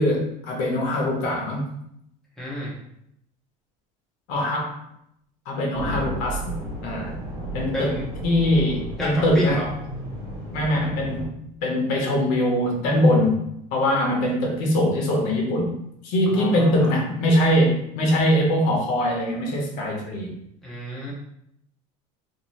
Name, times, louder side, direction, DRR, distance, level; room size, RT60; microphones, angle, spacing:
voice 1, 0.0-1.7 4.3-4.8 5.5-6.4 6.8-7.2 7.5-8.0 8.2-9.6 10.5-11.2 11.6-13.4 13.7-15.7 16.0-20.3, left 1 dB, 65° left, 0 dB, 0.8 m, -22 dB
voice 2, 2.4-2.7 7.7-8.0 9.0-9.7 16.3-16.9 20.6-21.1, equal, ahead, -6 dB, 0.5 m, -30 dB
sound 1, 5.7-11.3, right 1 dB, 85° right, 1.0 m, -33 dB
2.6 x 2.1 x 3.1 m, 0.76 s
cardioid pair, 170°, 15 cm